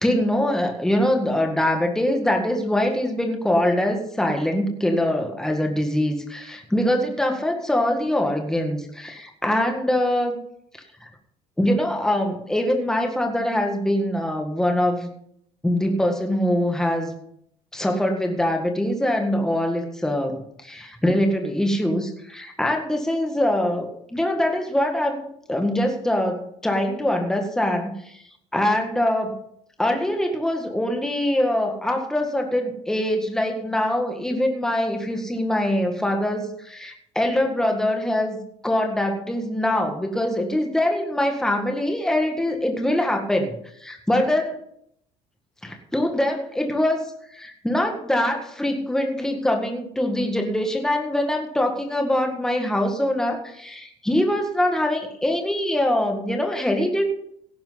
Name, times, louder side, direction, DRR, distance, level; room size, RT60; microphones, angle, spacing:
voice 1, 0.0-10.4 11.0-11.1 11.6-15.1 15.6-17.2 17.7-25.2 25.5-28.2 28.5-29.3 29.8-38.4 38.6-43.5 43.8-44.5 45.6-47.0 47.3-57.1, left 1 dB, 5° left, 3 dB, 1.8 m, -23 dB
17.0 x 10.5 x 4.0 m, 0.71 s
cardioid pair, 130°, 12 cm